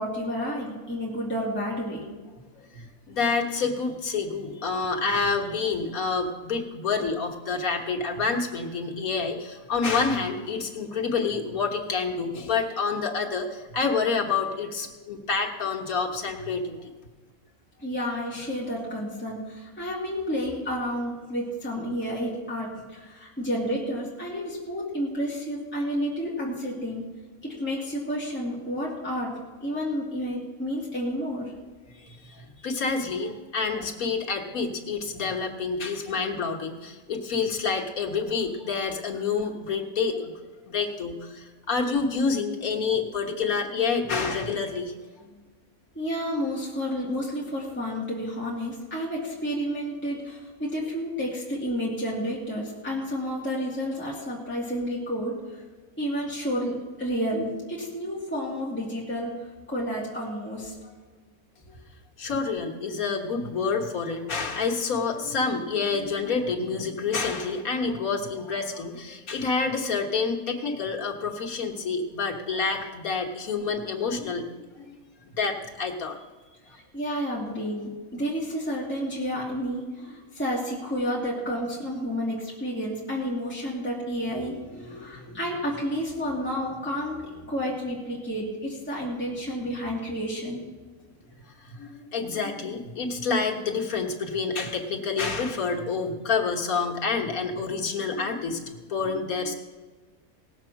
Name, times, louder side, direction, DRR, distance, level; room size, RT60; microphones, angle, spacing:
voice 1, 0.0-2.0 17.8-27.0 27.4-31.5 45.2-45.4 45.9-55.6 56.0-60.9 61.6-61.8 76.7-90.6, equal, 10° left, -5 dB, 2.2 m, -31 dB
voice 2, 2.7-16.9 32.0-40.3 40.7-44.9 62.2-75.0 75.4-76.2 76.7-76.8 91.6-99.5, left 4 dB, 80° left, 0 dB, 1.8 m, -28 dB
18.5 x 7.1 x 5.8 m, 1.4 s
omnidirectional pair, 1.5 m